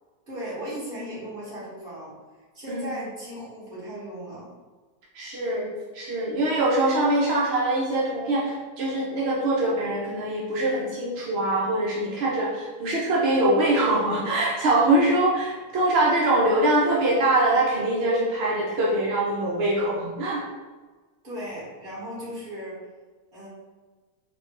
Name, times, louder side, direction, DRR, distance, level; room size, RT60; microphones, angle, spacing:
voice 1, 0.3-2.1 2.5-4.5 21.2-22.8 23.3-23.5, equal, 40° right, -9 dB, 1.6 m, -36 dB
voice 2, 5.1-5.7 5.9-20.4, right 1 dB, 65° right, -5 dB, 0.6 m, -23 dB
4.1 x 2.2 x 3.2 m, 1.3 s
omnidirectional pair, 1.6 m